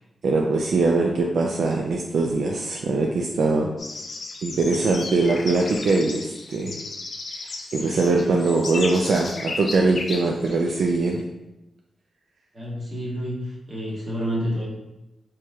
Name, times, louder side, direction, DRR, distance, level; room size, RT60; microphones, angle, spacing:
voice 1, 0.2-3.7 4.4-6.8 7.7-11.2, right 3 dB, 70° right, 0 dB, 0.3 m, -22 dB
sound 1, 3.8-11.2, left 3 dB, 45° left, 0.4 m, -35 dB
voice 2, 12.5-14.7, equal, 30° right, -7 dB, 1.2 m, -29 dB
4.4 x 3.0 x 2.3 m, 0.94 s
wide cardioid pair, 160°, 0 cm